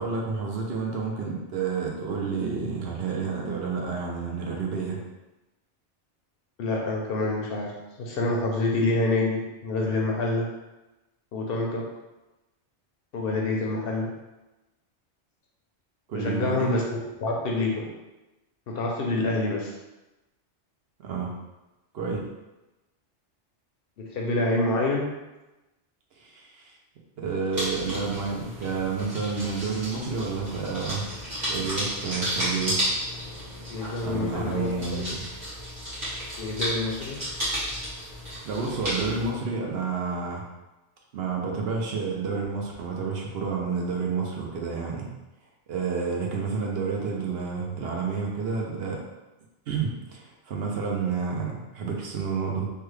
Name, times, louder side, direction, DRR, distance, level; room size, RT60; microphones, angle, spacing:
voice 1, 0.0-5.0 16.1-16.7 21.0-21.3 21.9-22.2 26.2-26.7 27.2-31.1 31.5-32.8 34.0-35.2 38.4-40.4 41.1-45.1 45.7-49.0 49.7-52.7, right 5 dB, 65° right, -1 dB, 0.8 m, -30 dB
voice 2, 6.6-7.7 8.0-10.5 11.3-11.8 13.1-14.1 16.1-16.8 17.2-17.8 18.7-19.7 24.1-25.1 33.7-35.0 36.4-37.2, left 2 dB, 65° left, -1 dB, 0.7 m, -27 dB
sound 1, 27.5-39.3, equal, 45° right, 1.5 m, -33 dB
3.2 x 2.2 x 3.2 m, 1.0 s
omnidirectional pair, 1.2 m